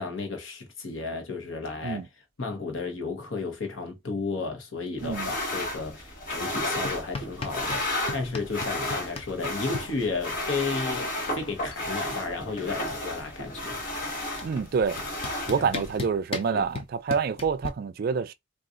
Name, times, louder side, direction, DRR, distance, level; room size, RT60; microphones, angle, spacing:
voice 1, 0.0-2.0 2.4-13.8 15.6-15.8 16.5-16.6, left 4 dB, 90° left, 0.9 m, -33 dB
sound 1, 5.0-16.0, left 1 dB, 45° left, 1.3 m, -33 dB
sound 2, 6.8-7.8 8.1-9.8 11.1-11.2 11.5-11.9 12.1-13.5 14.4-14.5 15.0-17.7, left 3 dB, 30° left, 0.5 m, -36 dB
voice 2, 14.4-15.0 15.5-18.3, right 5 dB, 50° right, 0.3 m, -27 dB
3.7 x 2.4 x 2.4 m
head